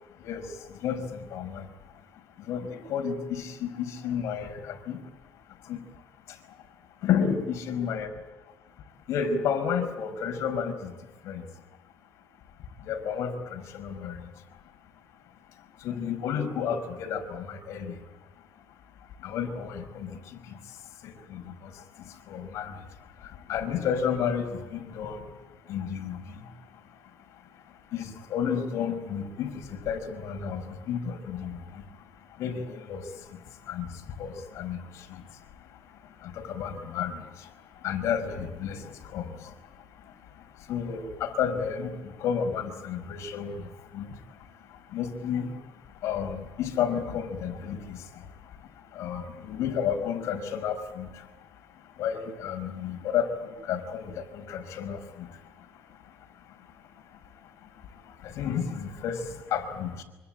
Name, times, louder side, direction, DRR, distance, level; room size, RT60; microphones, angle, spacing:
voice 1, 0.8-1.7 2.5-5.0 5.7-5.8 7.0-8.1 9.1-10.9 11.3-11.4 12.9-14.2 15.8-17.9 19.2-20.2 20.4-20.5 21.0-21.7 22.3-22.8 23.5-25.2 25.7-26.3 27.9-31.8 32.4-33.1 33.7-33.9 34.2-35.2 36.2-37.5 37.8-39.3 40.7-43.7 43.9-44.1 44.9-45.5 46.0-48.0 48.9-51.1 52.0-55.3 58.2-60.0, left 7 dB, 65° left, 5 dB, 5.3 m, -31 dB
25.5 x 25.0 x 8.9 m, 1.1 s
cardioid pair, 150°, 5 cm